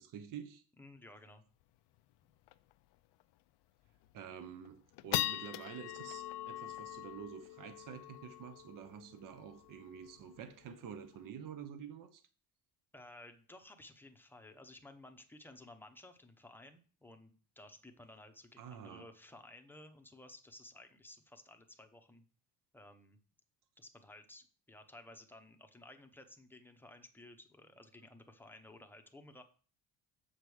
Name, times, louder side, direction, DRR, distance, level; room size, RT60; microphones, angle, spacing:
voice 1, 0.0-0.6 4.1-12.2 18.6-19.0, right 8 dB, 50° right, 1.0 m, -48 dB
voice 2, 0.8-1.4 12.9-22.2 22.7-23.2 23.8-29.4, left 1 dB, 5° left, 0.8 m, -56 dB
sound 1, 1.6-1.7 2.0-2.1 2.5-2.7 3.2-3.3 3.8-4.2 4.6-11.2, left 16 dB, 75° left, 0.6 m, -42 dB
7.4 x 5.2 x 6.3 m
cardioid pair, 135°, 41 cm